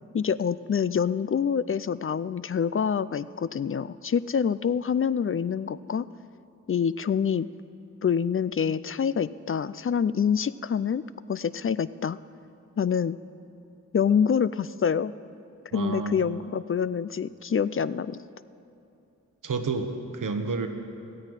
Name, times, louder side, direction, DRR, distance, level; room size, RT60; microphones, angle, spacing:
voice 1, 0.1-6.0 6.7-7.5 8.0-11.0 11.3-12.2 12.8-13.2 13.9-15.1 15.7-18.2, left 7 dB, 45° left, 16 dB, 0.4 m, -26 dB
voice 2, 15.7-16.3 19.4-20.7, right 4 dB, 85° right, 6 dB, 1.2 m, -30 dB
14.0 x 9.7 x 9.0 m, 2.6 s
cardioid pair, 50°, 31 cm